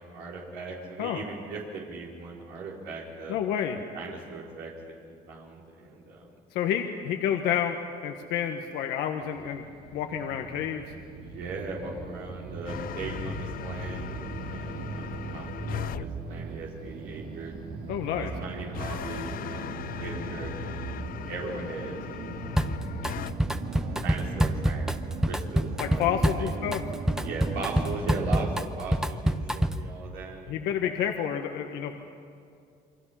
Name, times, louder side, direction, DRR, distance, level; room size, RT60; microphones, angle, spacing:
voice 1, 0.0-3.4 3.9-4.7 5.1-6.3 11.2-14.2 14.5-17.6 18.1-22.4 23.0-23.6 24.0-26.5 27.2-30.6, right 3 dB, 90° right, -3 dB, 4.5 m, -39 dB
voice 2, 3.3-3.8 6.5-9.6 9.9-10.8 17.9-18.3 25.8-26.8 30.5-31.9, left 9 dB, 90° left, 4 dB, 1.4 m, -29 dB
sound 1, 9.2-28.7, right 5 dB, 65° right, 2.2 m, -39 dB
sound 2, 12.7-16.1 18.7-23.3, left 12 dB, 60° left, 0.6 m, -38 dB
Drum kit, 22.6-23.1 23.4-29.9, equal, 5° right, 0.9 m, -27 dB
28.5 x 23.0 x 5.8 m, 2.4 s
cardioid pair, 110°, 17 cm